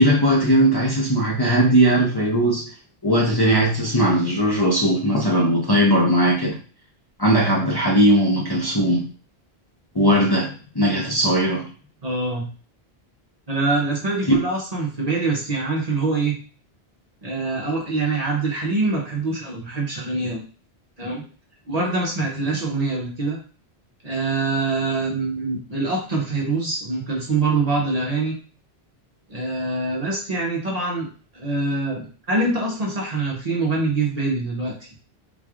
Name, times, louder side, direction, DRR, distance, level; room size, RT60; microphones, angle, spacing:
voice 1, 0.0-2.6 3.0-6.6 7.2-9.0 9.9-11.6 14.3-14.4, right 1 dB, 25° left, -4 dB, 0.7 m, -18 dB
voice 2, 12.0-12.5 13.5-16.3 17.2-20.4 21.0-21.2 21.7-23.4 24.0-28.3 29.3-31.1 31.3-34.7, right 3 dB, 40° right, -2 dB, 0.9 m, -24 dB
3.9 x 3.2 x 2.4 m, 0.38 s
omnidirectional pair, 1.1 m